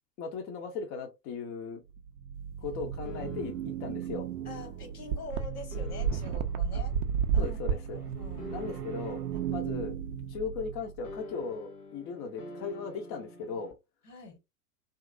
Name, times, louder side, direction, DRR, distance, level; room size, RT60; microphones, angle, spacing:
voice 1, 0.2-1.8 2.6-3.5 3.8-4.3 6.7-6.8 7.4-8.0 8.5-9.2 9.5-10.0 10.3-13.7, left 5 dB, 30° left, 0.5 m, -37 dB
sound 1, 1.9-11.2, right 9 dB, 90° right, 0.6 m, -38 dB
sound 2, 3.0-3.8 5.7-6.5 8.4-9.2 11.0-13.7, left 3 dB, 50° left, 0.9 m, -46 dB
sound 3, 4.1-4.2 4.5-4.6 5.1-10.3, right 7 dB, 35° right, 0.4 m, -32 dB
voice 2, 4.4-6.9 7.3-8.5 9.3-9.4 14.0-14.4, left 4 dB, 75° left, 1.4 m, -45 dB
2.8 x 2.4 x 2.5 m
hypercardioid pair, 100°, 46 cm